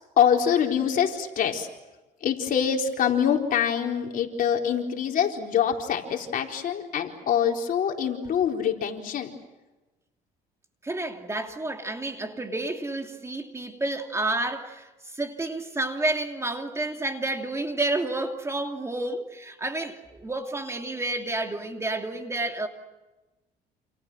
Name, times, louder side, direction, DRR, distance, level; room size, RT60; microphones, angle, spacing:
voice 1, 0.2-1.7 2.2-9.3, left 8 dB, 55° left, 2 dB, 4.2 m, -25 dB
voice 2, 10.8-22.7, right 2 dB, 15° right, 4 dB, 2.8 m, -30 dB
29.0 x 28.5 x 6.4 m, 1.1 s
cardioid pair, 110°, 17 cm